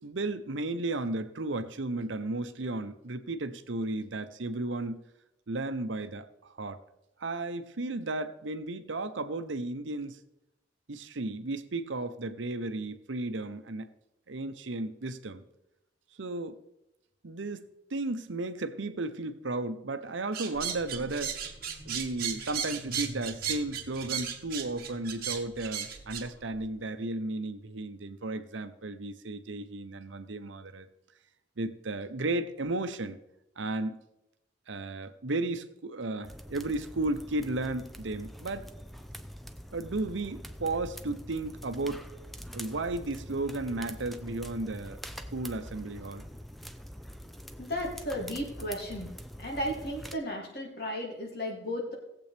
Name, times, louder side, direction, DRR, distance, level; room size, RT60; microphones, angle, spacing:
voice 1, 0.0-5.0 5.5-6.8 7.2-10.2 10.9-13.9 14.3-15.4 16.2-16.6 17.2-21.4 21.9-30.9 31.6-33.2 33.6-34.0 34.7-38.7 39.7-42.0 42.5-45.0 45.3-46.2, right 2 dB, 75° right, 0.8 m, -34 dB
sound 1, 20.3-26.2, right 8 dB, 50° right, 1.3 m, -35 dB
sound 2, 20.5-26.7, equal, 30° left, 2.5 m, -49 dB
sound 3, 36.2-50.2, equal, ahead, 0.5 m, -45 dB
voice 2, 47.6-49.1 49.4-51.9, equal, 50° left, 2.9 m, -34 dB
19.0 x 7.8 x 3.4 m
head